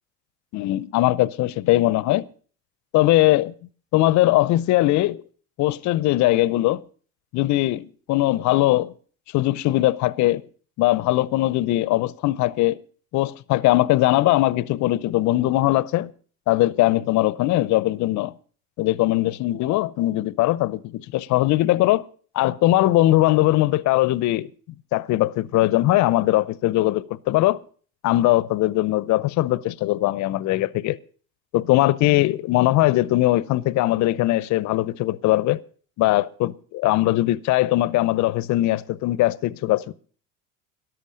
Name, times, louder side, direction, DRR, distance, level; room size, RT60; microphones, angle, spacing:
voice 1, 0.5-2.3 2.9-3.5 3.9-5.2 5.6-6.8 7.3-8.9 9.3-10.4 10.8-12.8 13.1-16.1 16.5-18.3 18.8-22.0 22.3-24.5 24.9-27.6 28.0-31.0 31.5-35.6 36.0-39.9, left 16 dB, 45° left, 0.7 m, -20 dB
13.5 x 11.5 x 5.0 m
hypercardioid pair, 80°, 39 cm